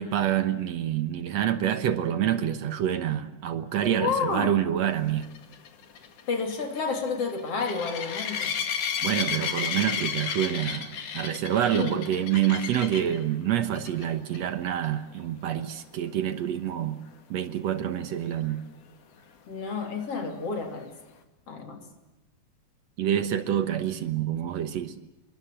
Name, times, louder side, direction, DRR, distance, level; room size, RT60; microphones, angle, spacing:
voice 1, 0.0-5.3 9.0-17.0 17.3-18.6 23.0-24.9, right 10 dB, 65° right, 11 dB, 2.2 m, -27 dB
voice 2, 4.0-4.6 6.3-8.5 11.7-12.0 19.5-21.0 21.5-21.9, left 5 dB, 50° left, 5 dB, 3.9 m, -30 dB
sound 1, 5.2-13.2 13.7-14.1 14.3-14.4 14.8-14.9 18.5-18.6, left 7 dB, 85° left, 3.7 m, -32 dB
27.0 x 23.5 x 7.7 m, 1.0 s
omnidirectional pair, 3.5 m